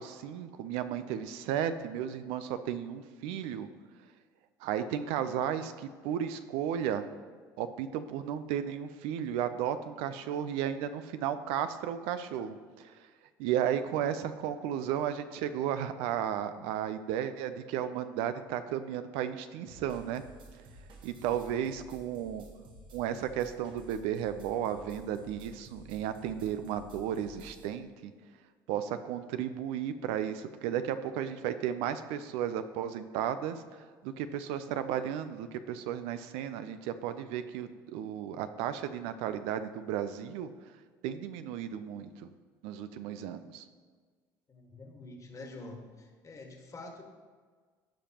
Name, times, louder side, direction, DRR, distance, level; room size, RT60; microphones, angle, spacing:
voice 1, 0.0-3.7 4.6-7.1 7.6-13.0 13.4-20.2 21.0-22.4 22.9-28.1 28.7-40.7 41.0-42.3 42.6-43.6, right 9 dB, 75° right, 11 dB, 0.5 m, -34 dB
sound 1, 19.7-27.7, right 2 dB, 55° right, 1.5 m, -53 dB
voice 2, 44.5-47.0, left 2 dB, 30° left, 2 dB, 1.6 m, -47 dB
15.0 x 5.1 x 2.9 m, 1.5 s
hypercardioid pair, 75°, 10 cm